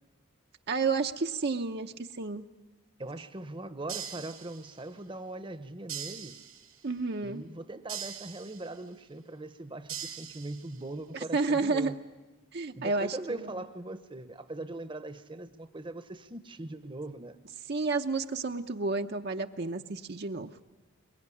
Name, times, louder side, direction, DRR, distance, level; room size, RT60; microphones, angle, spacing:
voice 1, 0.7-2.4 6.8-7.4 11.1-11.9 12.5-13.5 17.7-20.5, right 4 dB, 50° right, 5 dB, 0.8 m, -31 dB
voice 2, 3.0-6.4 7.2-12.0 12.7-17.4, right 2 dB, 25° right, 10 dB, 0.9 m, -40 dB
sound 1, 3.9-5.0 5.9-6.9 7.9-8.9 9.9-10.9, right 9 dB, 80° right, 2.6 m, -42 dB
23.0 x 22.0 x 9.8 m, 1.1 s
head